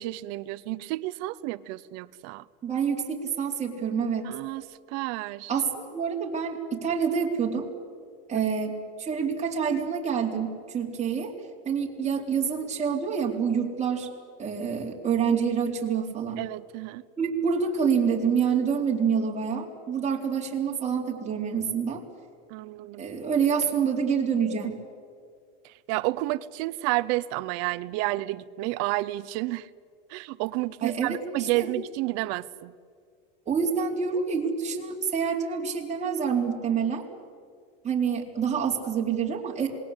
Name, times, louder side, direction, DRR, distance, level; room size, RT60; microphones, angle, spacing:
voice 1, 0.0-2.5 4.2-5.5 8.3-8.5 16.4-17.0 22.5-23.1 25.6-29.7 30.1-32.7, right 18 dB, 60° right, 17 dB, 0.8 m, -31 dB
voice 2, 2.6-4.3 5.5-7.7 8.3-11.3 11.7-14.1 14.4-16.4 17.2-22.0 23.0-24.8 30.8-31.7 33.5-37.0 37.8-39.7, right 6 dB, 25° right, 0 dB, 4.1 m, -27 dB
27.5 x 20.5 x 8.2 m, 2.1 s
supercardioid pair, 130°, 29 cm